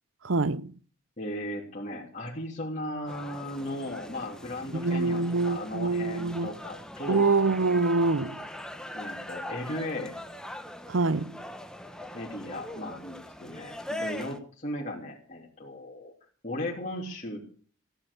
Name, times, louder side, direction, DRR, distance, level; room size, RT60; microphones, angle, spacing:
voice 1, 0.2-0.7 4.7-6.5 7.1-8.4 10.9-11.4, right 3 dB, 80° right, 0.8 m, -25 dB
voice 2, 1.2-7.3 8.9-10.1 12.1-16.1 16.4-17.4, left 1 dB, 40° left, 3.3 m, -36 dB
sound 1, 3.1-14.4, left 1 dB, 5° left, 1.5 m, -41 dB
15.5 x 11.5 x 7.0 m
head